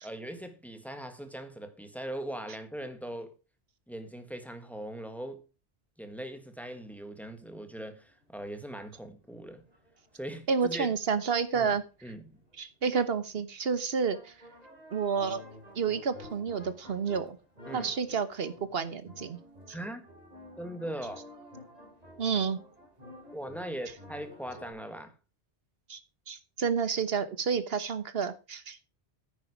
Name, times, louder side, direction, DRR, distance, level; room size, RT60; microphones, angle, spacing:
voice 1, 0.0-3.3 3.9-5.4 6.0-9.6 10.1-10.9 11.5-11.7 12.0-12.4 17.6-17.9 19.7-20.1 20.6-21.3 23.3-25.1, right 1 dB, ahead, 1.5 m, -40 dB
sound 1, 6.7-7.3 7.6-8.3 8.6-8.7 8.9-9.0 9.3-11.2 11.6-13.0 13.4-13.5 14.1-24.7, equal, 35° right, 4.0 m, -51 dB
voice 2, 10.5-11.8 12.6-14.3 14.9-15.4 15.7-17.4 17.7-19.4 22.2-22.6 25.9-26.0 26.3-28.8, right 6 dB, 60° right, 1.3 m, -30 dB
9.8 x 9.2 x 4.9 m
omnidirectional pair, 1.1 m